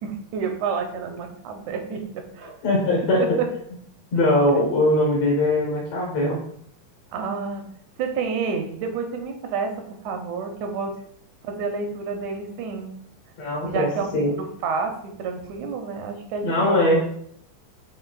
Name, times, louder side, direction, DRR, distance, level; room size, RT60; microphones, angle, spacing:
voice 1, 0.0-2.5 3.2-3.5 4.5-4.6 7.1-7.6 8.0-9.7 10.0-10.9 11.4-12.9 13.6-17.0, right 5 dB, 80° right, 4 dB, 1.9 m, -29 dB
voice 2, 2.6-3.2 4.1-6.4 13.4-14.3 16.4-17.0, left 1 dB, 65° left, -3 dB, 1.9 m, -21 dB
7.3 x 2.6 x 2.3 m, 0.67 s
omnidirectional pair, 3.4 m